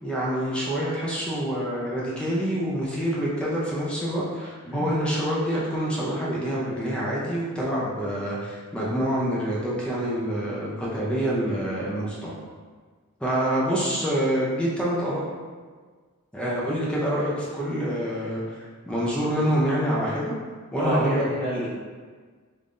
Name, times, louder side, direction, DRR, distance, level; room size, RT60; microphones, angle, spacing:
voice 1, 0.0-12.3 13.2-15.2 16.3-18.4 18.9-20.3 20.7-21.2, equal, 5° left, -6 dB, 0.5 m, -26 dB
voice 2, 20.8-21.7, right 1 dB, 35° left, -9 dB, 1.2 m, -28 dB
3.6 x 3.2 x 2.5 m, 1.5 s
head